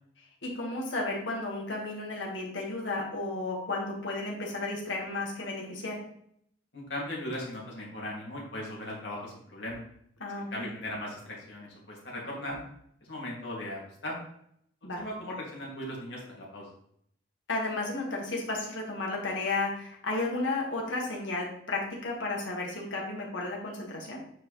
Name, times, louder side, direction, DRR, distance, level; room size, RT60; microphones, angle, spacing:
voice 1, 0.4-6.0 10.2-10.7 14.8-15.0 17.5-24.2, left 2 dB, 90° left, -1 dB, 2.2 m, -33 dB
voice 2, 6.7-9.8 10.5-12.6 13.1-14.2 15.0-16.7, left 1 dB, 70° left, -4 dB, 2.8 m, -38 dB
8.9 x 5.0 x 3.4 m, 0.70 s
head